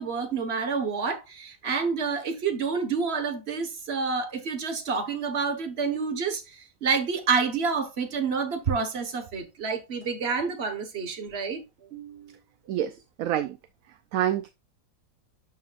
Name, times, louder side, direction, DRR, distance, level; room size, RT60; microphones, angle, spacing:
voice 1, 0.0-11.6 11.9-12.4, right 5 dB, 40° right, 1.4 m, -28 dB
voice 2, 12.7-13.6 14.1-14.5, right 11 dB, 70° right, 0.9 m, -27 dB
11.5 x 5.1 x 2.4 m
omnidirectional pair, 1.7 m